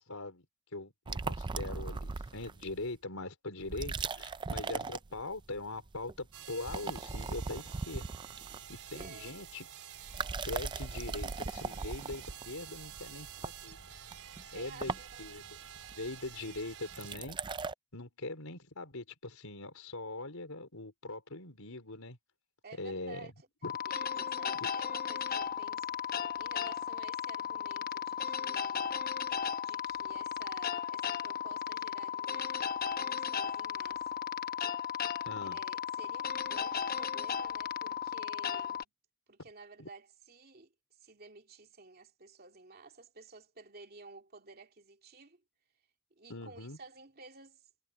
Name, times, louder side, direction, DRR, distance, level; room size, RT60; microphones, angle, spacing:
voice 1, 0.1-0.4 0.7-8.1 8.7-9.7 10.4-13.8 14.5-14.9 15.2-15.6 16.0-17.4 17.9-22.2 22.8-23.3 23.6-23.7 24.6-24.7 35.2-35.6 39.8-39.9 46.3-46.8, left 2 dB, 75° left, 4.6 m, -42 dB
sound 1, 1.1-2.9 3.6-5.6 5.9-6.2 6.5-9.5 10.0-17.7, right 4 dB, 20° right, 0.3 m, -39 dB
sound 2, 6.3-17.2, right 10 dB, 90° right, 3.9 m, -49 dB
voice 2, 9.0-9.4 14.5-15.2 22.6-23.3 23.9-25.9 26.4-29.0 29.6-34.1 35.4-38.9 39.3-40.7 41.0-45.4 46.1-47.7, right 3 dB, 45° right, 2.8 m, -53 dB
sound 3, 23.6-38.8, left 8 dB, 40° left, 0.9 m, -35 dB
head